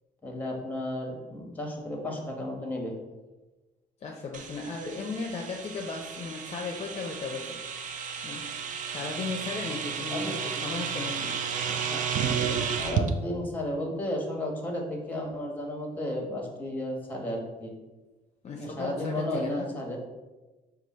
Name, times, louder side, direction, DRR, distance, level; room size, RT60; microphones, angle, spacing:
voice 1, 0.2-2.9 10.1-10.4 11.6-12.0 12.6-17.7 18.6-20.0, left 1 dB, 10° left, 1 dB, 1.0 m, -33 dB
voice 2, 4.0-7.6 8.2-8.5 8.8-11.4 18.4-19.7, left 4 dB, 40° left, 0 dB, 0.5 m, -36 dB
sound 1, 4.3-13.1, right 7 dB, 50° right, 0.4 m, -32 dB
4.7 x 2.4 x 4.0 m, 1.2 s
cardioid pair, 110°, 17 cm